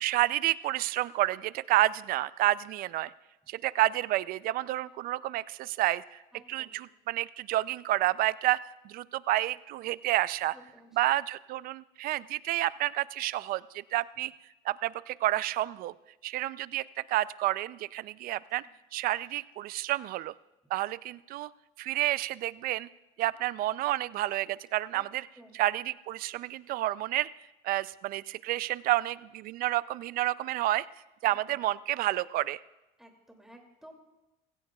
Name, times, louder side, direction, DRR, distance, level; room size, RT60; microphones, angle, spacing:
voice 1, 0.0-3.1 3.5-6.2 6.5-8.6 8.8-10.6 10.9-13.6 13.9-14.3 14.7-15.9 16.2-18.7 18.9-20.3 20.7-21.5 21.8-22.9 23.2-25.3 25.5-27.3 27.6-30.9 31.2-32.6, right 15 dB, 55° right, 18 dB, 0.4 m, -29 dB
voice 2, 6.3-6.7 10.5-11.0 18.6-18.7 24.9-25.1 25.4-25.6 31.2-31.6 33.0-33.9, right 1 dB, ahead, 1 dB, 2.5 m, -54 dB
20.0 x 16.0 x 2.3 m, 0.98 s
cardioid pair, 125°, 18 cm